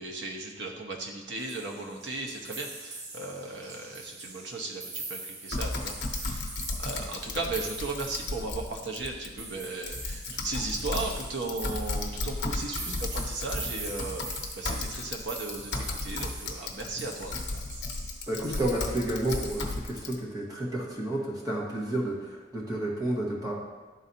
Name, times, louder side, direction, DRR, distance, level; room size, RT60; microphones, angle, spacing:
voice 1, 0.0-6.5 6.8-17.6, right 3 dB, 65° right, 0 dB, 1.0 m, -36 dB
sound 1, 1.4-19.7, right 3 dB, 35° right, 0.8 m, -43 dB
Typing, 5.5-20.1, left 3 dB, 60° left, 0.8 m, -35 dB
voice 2, 18.3-23.5, right 1 dB, 20° right, -4 dB, 1.4 m, -31 dB
12.0 x 3.9 x 2.8 m, 1.3 s
head